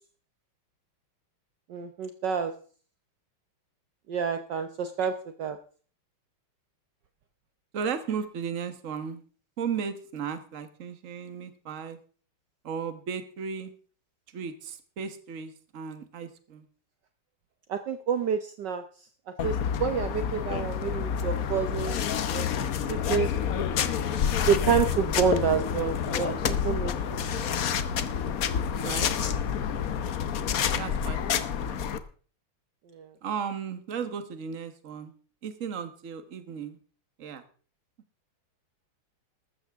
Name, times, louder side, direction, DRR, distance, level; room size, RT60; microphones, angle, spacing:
voice 1, 1.7-2.5 4.1-5.1 5.4-5.6 17.7-18.8 19.4-22.0 22.3-22.5 22.9-23.3 23.6-23.7 24.5-27.3 32.9-33.1, right 7 dB, 65° right, 8 dB, 1.4 m, -28 dB
voice 2, 7.7-9.2 9.6-12.0 12.6-13.7 14.3-16.6 28.8-29.1 30.7-32.0 33.2-35.1 35.4-36.8 37.2-37.4, right 6 dB, 40° right, 10 dB, 1.5 m, -35 dB
sound 1, 19.4-32.0, left 8 dB, 55° left, 1.1 m, -28 dB
14.5 x 13.0 x 3.6 m, 0.41 s
omnidirectional pair, 2.3 m